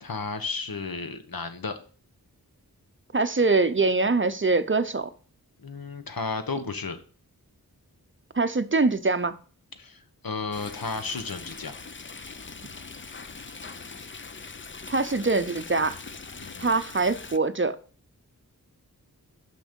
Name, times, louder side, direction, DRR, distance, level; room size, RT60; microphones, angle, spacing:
voice 1, 0.0-1.8 5.6-7.0 9.8-11.8 16.4-16.7, left 4 dB, 70° left, 1.1 m, -33 dB
voice 2, 3.1-5.1 8.3-9.3 14.9-16.0 16.6-17.8, right 3 dB, 35° right, 0.6 m, -23 dB
Stream, 10.5-17.4, left 4 dB, 30° left, 0.6 m, -42 dB
6.2 x 6.0 x 5.2 m
wide cardioid pair, 50°, 37 cm